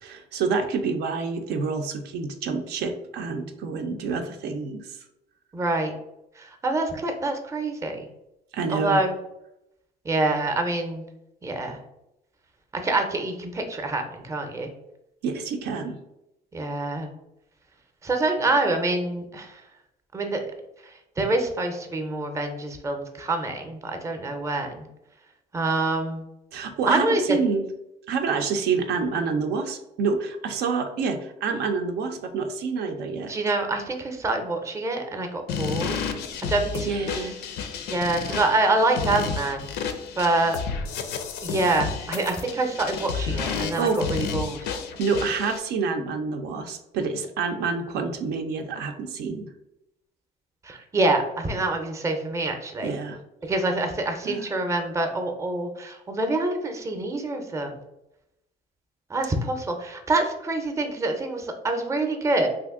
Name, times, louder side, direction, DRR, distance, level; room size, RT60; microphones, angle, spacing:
voice 1, 0.0-5.0 8.5-9.0 15.2-16.0 26.5-27.6 28.1-33.3 36.9-37.3 38.2-38.3 43.1-43.4 43.8-44.0 45.0-49.5 52.8-53.2 54.2-54.5, right 5 dB, 80° right, 5 dB, 0.5 m, -27 dB
voice 2, 5.5-5.9 6.4-8.1 8.7-9.1 10.0-11.0 11.4-11.8 12.8-14.7 16.5-17.1 18.0-19.6 20.1-20.4 20.8-24.9 25.5-26.2 26.9-27.4 33.3-35.9 36.5-37.1 37.9-39.7 40.2-40.6 41.4-44.7 50.6-52.9 53.4-57.8 59.1-62.5, right 2 dB, 20° right, 5 dB, 0.5 m, -26 dB
sound 1, 35.5-45.6, left 6 dB, 85° left, 0.4 m, -31 dB
2.9 x 2.5 x 3.5 m, 0.87 s
cardioid pair, 110°, 17 cm